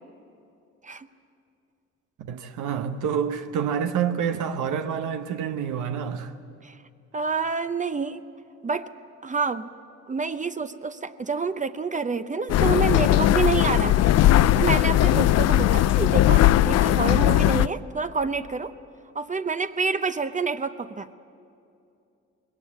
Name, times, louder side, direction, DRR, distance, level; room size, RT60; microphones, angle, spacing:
voice 1, 2.2-6.3, right 7 dB, 80° right, 1.0 m, -28 dB
voice 2, 7.1-8.2 8.6-8.9 9.2-9.7 10.1-14.1 14.6-18.7 19.1-21.1, right 4 dB, 25° right, 0.7 m, -28 dB
sound 1, 12.5-17.7, left 13 dB, 55° left, 0.4 m, -19 dB
20.0 x 17.5 x 8.3 m
cardioid pair, 90°, 30 cm